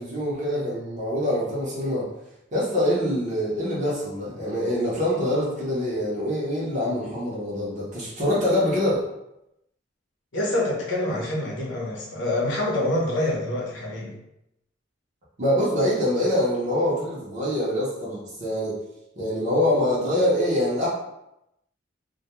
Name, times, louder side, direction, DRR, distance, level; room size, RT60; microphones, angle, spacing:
voice 1, 0.0-2.1 2.5-9.0 15.4-18.8 19.2-20.9, left 1 dB, 40° right, -6 dB, 0.7 m, -24 dB
voice 2, 10.3-14.1, left 1 dB, 75° left, -3 dB, 0.7 m, -26 dB
2.2 x 2.2 x 2.9 m, 0.86 s
head